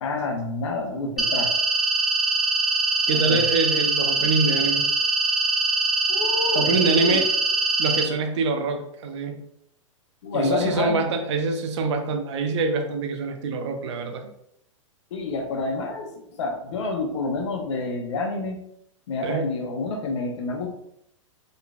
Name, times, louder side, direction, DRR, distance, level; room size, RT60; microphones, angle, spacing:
voice 1, 0.0-1.5 3.1-3.4 6.1-7.2 10.2-11.2 15.1-18.6 19.1-20.7, left 3 dB, 60° left, 2 dB, 1.0 m, -28 dB
sound 1, 1.2-8.0, right 3 dB, ahead, 0.5 m, -23 dB
voice 2, 3.1-4.9 6.5-7.3 7.8-9.4 10.3-14.2 19.2-19.4, right 4 dB, 55° right, 5 dB, 0.7 m, -25 dB
3.9 x 3.9 x 2.4 m, 0.74 s
hypercardioid pair, 110°, 17 cm